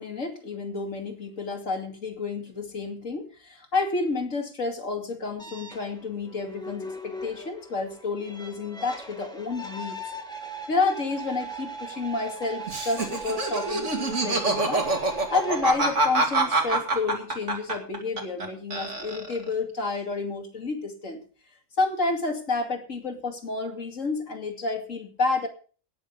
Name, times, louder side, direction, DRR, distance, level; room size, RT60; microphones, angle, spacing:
voice 1, 0.0-10.0 10.7-14.9 15.3-21.2 21.8-25.5, left 3 dB, 85° left, 4 dB, 2.8 m, -30 dB
sound 1, 5.4-15.7, right 3 dB, 5° left, 1.6 m, -39 dB
Laughter, 12.7-18.5 18.7-19.5, right 2 dB, 70° right, 2.8 m, -25 dB
18.0 x 7.4 x 5.4 m, 0.40 s
omnidirectional pair, 1.3 m